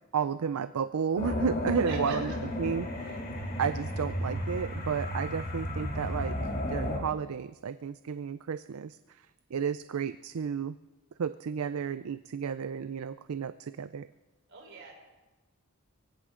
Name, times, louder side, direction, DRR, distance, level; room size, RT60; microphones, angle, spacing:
voice 1, 0.1-2.3 2.6-3.2 3.6-6.4 6.7-9.0 9.5-10.8 11.2-14.1, right 7 dB, 70° right, 13 dB, 0.4 m, -32 dB
sound 1, 1.2-7.0, left 1 dB, 40° left, 2.5 m, -33 dB
voice 2, 1.9-2.2 14.5-14.9, right 4 dB, 55° right, -1 dB, 5.4 m, -41 dB
23.0 x 16.5 x 3.8 m, 1.1 s
head